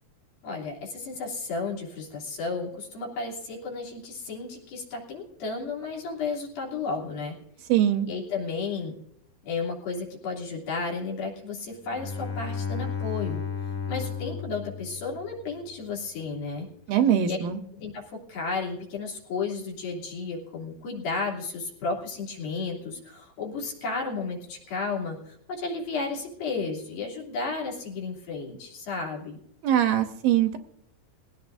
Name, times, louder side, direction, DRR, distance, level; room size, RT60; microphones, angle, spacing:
voice 1, 0.4-7.3 8.1-9.0 9.4-13.4 13.9-16.7 17.2-17.4 17.7-29.4, left 4 dB, 65° left, -3 dB, 4.8 m, -33 dB
voice 2, 7.7-8.1 16.9-17.6 29.6-30.6, right 10 dB, 75° right, 7 dB, 2.4 m, -22 dB
Bowed string instrument, 11.8-15.6, left 6 dB, 20° left, 2.0 m, -33 dB
21.0 x 16.5 x 2.6 m, 0.75 s
omnidirectional pair, 4.5 m